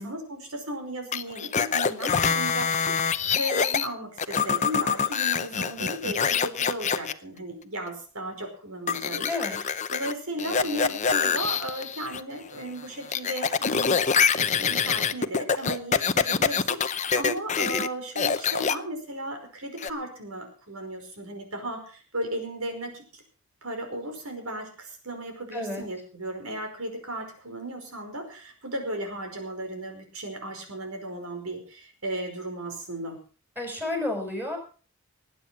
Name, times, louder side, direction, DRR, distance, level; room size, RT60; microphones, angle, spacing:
voice 1, 0.0-9.3 9.5-14.0 14.4-23.2 23.6-33.2, right 1 dB, 75° right, 5 dB, 5.2 m, -35 dB
sound 1, 1.1-3.9 4.2-7.1 8.9-10.1 10.4-12.2 12.5-17.9 18.2-18.8 19.8-19.9, left 6 dB, 30° left, 0.7 m, -25 dB
voice 2, 9.3-9.6 25.5-25.9 33.6-34.6, left 2 dB, 10° right, 2 dB, 6.1 m, -31 dB
19.5 x 9.2 x 5.7 m, 0.39 s
head